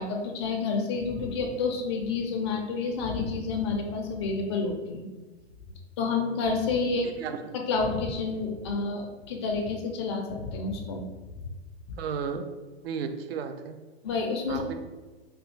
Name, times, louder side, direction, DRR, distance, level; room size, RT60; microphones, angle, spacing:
voice 1, 0.0-5.1 6.0-7.1 7.7-11.0 11.9-12.0 14.0-14.6, left 4 dB, 25° left, 2 dB, 0.4 m, -29 dB
voice 2, 7.0-7.5 12.0-12.4 12.8-13.8 14.5-14.8, right 6 dB, 65° right, 7 dB, 0.5 m, -34 dB
3.3 x 2.4 x 3.1 m, 1.3 s
hypercardioid pair, 145°, 32 cm